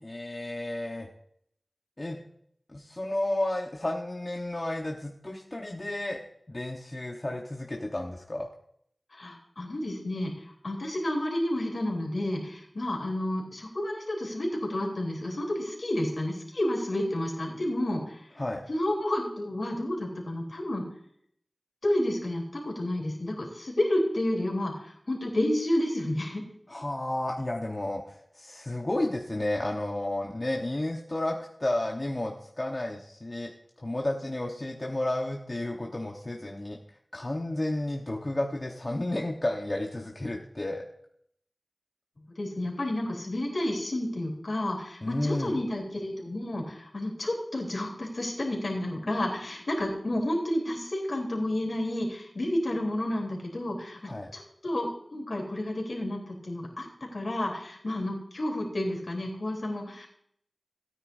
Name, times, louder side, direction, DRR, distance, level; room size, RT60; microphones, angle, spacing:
voice 1, 0.0-1.1 2.0-2.2 2.7-6.2 6.5-8.5 18.4-18.6 26.7-33.5 33.8-36.8 37.1-40.8 45.0-45.6 54.1-54.3, left 1 dB, 40° left, 0 dB, 1.1 m, -32 dB
voice 2, 9.1-10.3 10.6-18.3 18.7-20.9 21.8-26.4 42.4-54.0 54.3-56.9 57.1-60.1, left 1 dB, 70° left, 0 dB, 3.5 m, -30 dB
17.5 x 9.5 x 2.7 m, 0.69 s
wide cardioid pair, 50°, 0 cm